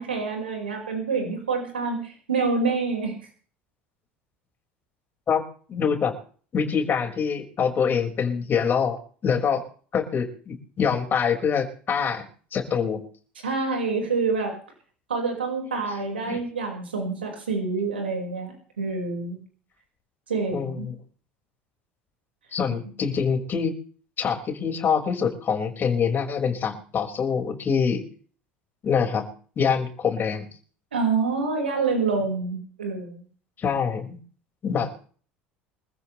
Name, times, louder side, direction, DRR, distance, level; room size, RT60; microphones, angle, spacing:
voice 1, 0.0-3.2 13.4-14.6 15.1-19.4 20.3-20.9 30.9-33.2, right 4 dB, 85° right, 2 dB, 5.6 m, -27 dB
voice 2, 5.7-6.1 6.5-9.6 9.9-12.2 12.5-13.0 16.3-16.4 20.5-21.0 22.5-23.7 24.2-28.0 28.8-29.3 29.6-30.4 33.6-34.2 34.6-35.1, left 6 dB, 35° left, 3 dB, 5.9 m, -25 dB
27.0 x 15.0 x 3.4 m, 0.43 s
hypercardioid pair, 70°, 6 cm